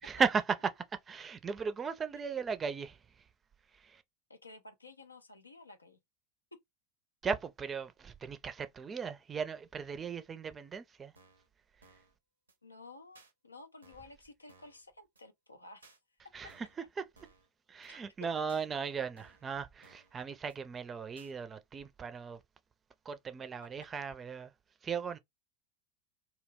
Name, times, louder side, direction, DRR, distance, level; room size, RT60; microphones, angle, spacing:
voice 1, 0.0-3.3 3.7-4.0 7.2-11.1 11.8-11.9 16.3-16.7 17.0-17.1 17.7-22.4 23.0-24.5 24.8-25.2, right 6 dB, 25° right, 0.4 m, -37 dB
voice 2, 4.3-6.0 6.5-6.6 12.6-16.0 16.2-16.5 17.9-18.0, left 3 dB, 90° left, 0.4 m, -53 dB
sound 1, 11.2-11.5 11.8-12.1 12.5-12.6 13.2-13.3 13.8-14.2 14.5-14.8 15.2-15.3 15.8-16.0 16.5-16.8 17.2-17.5 17.8-17.9 18.5-18.7 19.2-19.5 19.8-20.2 20.5-20.6 21.2-21.3, right 3 dB, 85° right, 0.6 m, -61 dB
2.3 x 2.1 x 3.3 m
figure-of-eight pair, 85°, 0 cm